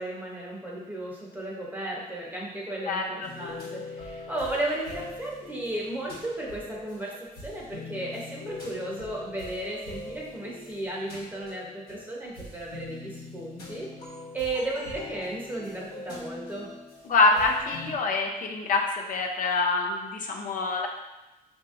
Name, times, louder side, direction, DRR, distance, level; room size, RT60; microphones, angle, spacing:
voice 1, 0.0-13.9 14.3-16.7, right 1 dB, 10° right, -4 dB, 0.8 m, -34 dB
voice 2, 2.9-3.3 17.1-20.9, left 3 dB, 60° left, 1 dB, 0.5 m, -25 dB
sound 1, 3.2-18.0, left 2 dB, 80° left, 1.1 m, -43 dB
5.6 x 2.6 x 2.5 m, 1.0 s
wide cardioid pair, 145°, 16 cm